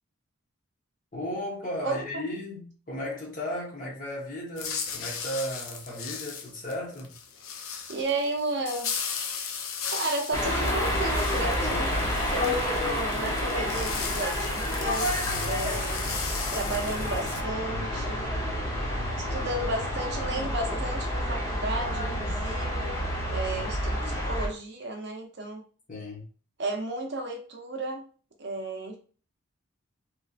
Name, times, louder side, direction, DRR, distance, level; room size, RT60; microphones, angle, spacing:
voice 1, 1.1-7.1 25.9-26.3, left 1 dB, 40° left, 1.0 m, -35 dB
voice 2, 1.8-2.2 7.9-8.9 9.9-11.9 12.3-16.2 16.5-18.3 19.2-23.0 23.3-25.6 26.6-28.0 28.4-29.0, right 2 dB, 55° right, 0.6 m, -33 dB
sound 1, 4.6-17.4, left 6 dB, 85° left, 0.6 m, -36 dB
sound 2, 10.3-24.5, equal, 15° left, 0.6 m, -29 dB
3.1 x 2.7 x 2.4 m
head